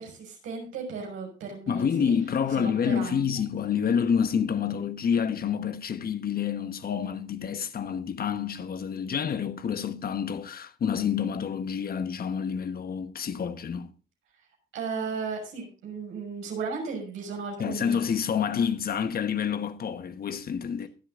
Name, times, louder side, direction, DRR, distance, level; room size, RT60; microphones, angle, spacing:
voice 1, 0.0-2.2 2.5-3.3 14.7-18.0, right 5 dB, 90° right, 5.9 m, -35 dB
voice 2, 1.7-13.9 17.6-20.9, left 7 dB, 50° left, 1.2 m, -28 dB
23.0 x 7.8 x 2.5 m
cardioid pair, 90°, 20 cm